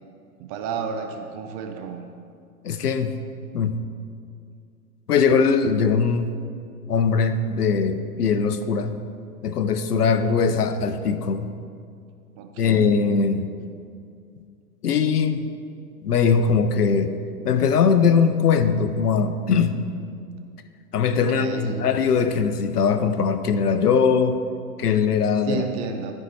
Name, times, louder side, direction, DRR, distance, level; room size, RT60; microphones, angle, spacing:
voice 1, 0.4-2.0 10.1-10.5 12.4-13.0 21.3-21.8 25.5-26.1, right 6 dB, 25° right, 5 dB, 0.6 m, -32 dB
voice 2, 2.6-3.1 3.5-3.8 5.1-6.3 6.9-9.0 9.4-11.5 12.6-13.5 14.8-15.5 16.0-17.2 17.4-19.8 20.9-24.4 24.8-25.6, left 6 dB, 85° left, 10 dB, 0.8 m, -21 dB
12.5 x 4.7 x 4.2 m, 2.3 s
hypercardioid pair, 125°, 46 cm